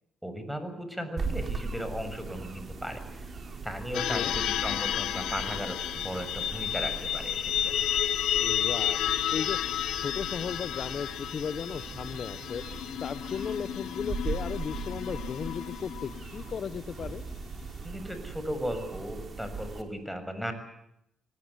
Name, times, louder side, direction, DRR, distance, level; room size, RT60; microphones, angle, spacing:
voice 1, 0.2-3.3 3.6-7.8 17.8-20.5, equal, ahead, 9 dB, 7.0 m, -36 dB
sound 1, 1.2-19.8, right 4 dB, 45° right, 5.1 m, -40 dB
sound 2, 3.9-16.5, left 11 dB, 80° left, 0.9 m, -32 dB
voice 2, 3.9-4.4 8.4-9.6 10.0-12.6 13.0-17.2, left 7 dB, 55° left, 13 dB, 1.3 m, -36 dB
24.5 x 20.0 x 9.8 m, 0.79 s
supercardioid pair, 65°, 0 cm